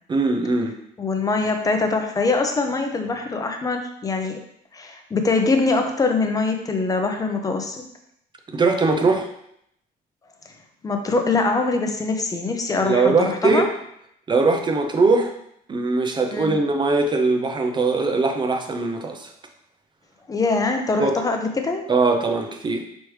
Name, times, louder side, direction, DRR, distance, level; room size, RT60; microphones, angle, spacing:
voice 1, 0.1-0.7 8.5-9.3 12.8-13.7 14.3-15.3 15.7-19.3 21.0-21.2 21.9-22.8, right 3 dB, 25° right, 4 dB, 0.5 m, -20 dB
voice 2, 1.0-4.4 4.7-7.7 10.8-13.7 16.3-16.5 20.3-21.8, left 3 dB, 20° left, 5 dB, 0.6 m, -23 dB
4.9 x 3.1 x 3.2 m, 0.73 s
cardioid pair, 110°, 17 cm